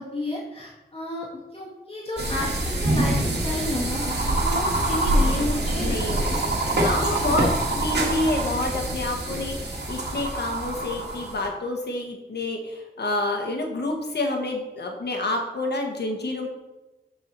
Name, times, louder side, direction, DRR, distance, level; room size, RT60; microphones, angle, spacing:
voice 1, 0.0-6.0 6.2-6.4 7.2-7.4, left 1 dB, 35° left, -6 dB, 2.0 m, -31 dB
sound 1, 2.2-11.5, right 1 dB, 90° right, 2.1 m, -25 dB
voice 2, 5.8-16.5, left 2 dB, 85° left, 2 dB, 1.5 m, -28 dB
13.0 x 4.8 x 4.3 m, 1.1 s
wide cardioid pair, 100°, 17 cm